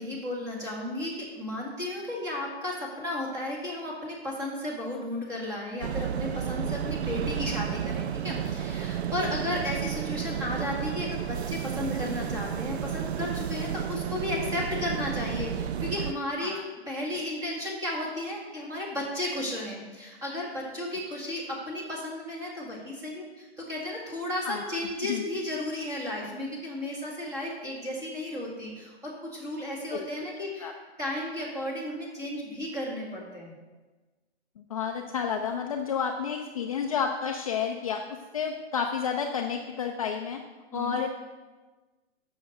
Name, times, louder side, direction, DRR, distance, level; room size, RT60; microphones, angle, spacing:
voice 1, 0.0-16.6 16.9-33.5 40.7-41.0, left 1 dB, 10° right, -4 dB, 1.8 m, -34 dB
sound 1, 5.8-16.1, right 9 dB, 70° right, 0.6 m, -32 dB
voice 2, 24.4-24.8 25.1-25.2 29.9-30.1 30.6-30.7 34.7-38.0 38.3-40.4 40.7-41.1, left 7 dB, 35° left, 3 dB, 0.5 m, -30 dB
7.9 x 6.6 x 7.8 m, 1.3 s
hypercardioid pair, 170°, 33 cm